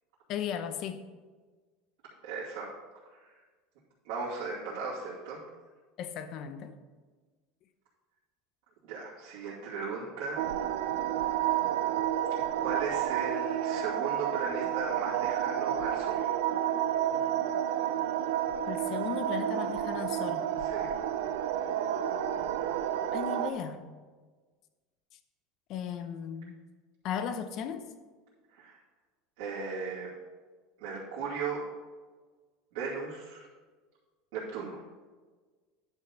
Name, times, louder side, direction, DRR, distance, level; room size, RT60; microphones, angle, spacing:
voice 1, 0.3-1.0 6.0-6.8 17.1-17.3 18.7-20.5 23.1-23.8 25.7-26.6 27.0-27.9, left 8 dB, 40° left, 10 dB, 0.7 m, -36 dB
voice 2, 2.2-2.7 4.0-5.4 8.8-10.4 12.3-16.3 20.6-20.9 28.5-28.8 29.4-30.1 30.8-31.6 32.7-33.5 34.3-34.8, right 4 dB, 70° right, -9 dB, 2.6 m, -37 dB
sound 1, 10.4-23.5, right 10 dB, 90° right, 0.6 m, -30 dB
10.5 x 4.7 x 5.4 m, 1.4 s
cardioid pair, 165°, 0 cm